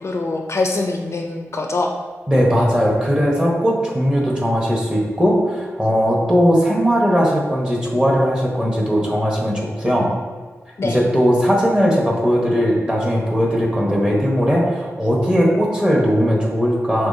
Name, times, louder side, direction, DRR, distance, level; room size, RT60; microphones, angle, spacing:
voice 1, 0.0-1.9 10.8-11.0, left 2 dB, 55° left, 2 dB, 0.4 m, -23 dB
voice 2, 2.3-10.1 10.8-17.1, equal, 15° right, -2 dB, 1.1 m, -18 dB
5.8 x 3.2 x 2.7 m, 1.4 s
wide cardioid pair, 65°, 5 cm